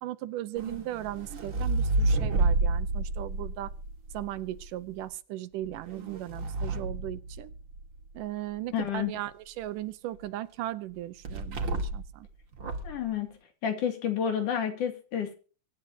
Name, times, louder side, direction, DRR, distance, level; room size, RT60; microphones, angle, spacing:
voice 1, 0.0-3.7 4.1-7.5 8.1-12.3, right 14 dB, 80° right, 15 dB, 2.4 m, -37 dB
sound 1, 0.6-4.7 5.6-7.9 11.2-12.1 12.5-13.0, right 2 dB, 40° right, 2.3 m, -30 dB
voice 2, 8.7-9.1 12.8-13.3 13.6-15.3, left 8 dB, 70° left, 7 dB, 3.9 m, -30 dB
24.0 x 11.0 x 2.8 m, 0.37 s
omnidirectional pair, 3.8 m